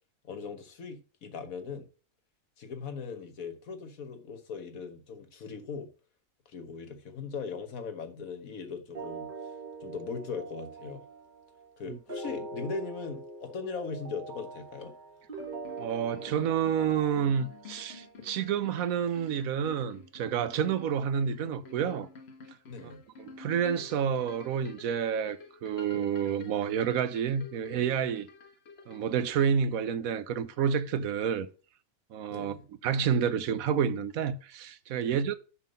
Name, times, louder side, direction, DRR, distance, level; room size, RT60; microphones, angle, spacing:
voice 1, 0.2-1.9 2.6-5.9 6.4-9.3 9.8-11.0 11.8-14.9 22.7-23.0 32.3-32.6 35.0-35.2, left 5 dB, 90° left, 1.7 m, -39 dB
sound 1, 8.9-18.1, right 3 dB, 35° right, 1.9 m, -43 dB
sound 2, 15.3-29.5, left 4 dB, 50° left, 1.4 m, -50 dB
voice 2, 15.8-22.1 22.8-22.9 23.2-28.3 28.9-31.5 32.1-32.6 32.8-35.4, right 7 dB, 85° right, 1.2 m, -29 dB
6.6 x 5.6 x 5.3 m
omnidirectional pair, 1.4 m